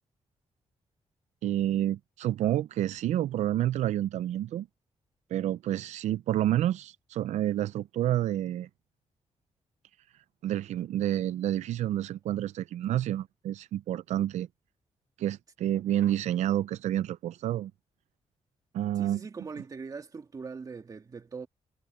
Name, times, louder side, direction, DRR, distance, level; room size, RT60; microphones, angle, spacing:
voice 1, 1.4-4.7 5.3-8.7 10.4-14.5 15.2-17.7 18.7-19.2, right 12 dB, 90° right, 0.4 m, -29 dB
voice 2, 19.0-21.5, right 5 dB, 30° right, 2.4 m, -41 dB
wide cardioid pair, 160°, 12 cm